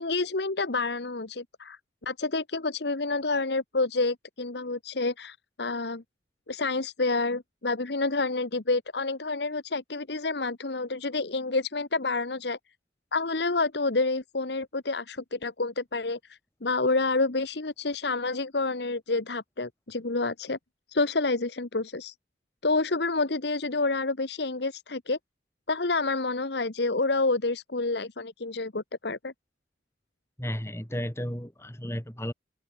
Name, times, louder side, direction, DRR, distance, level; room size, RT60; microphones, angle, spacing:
voice 1, 0.0-6.0 6.5-12.6 13.1-20.6 20.9-22.1 22.6-25.2 25.7-29.3, left 3 dB, 70° left, 1.3 m, -28 dB
voice 2, 30.4-32.3, equal, 15° left, 3.9 m, -33 dB
head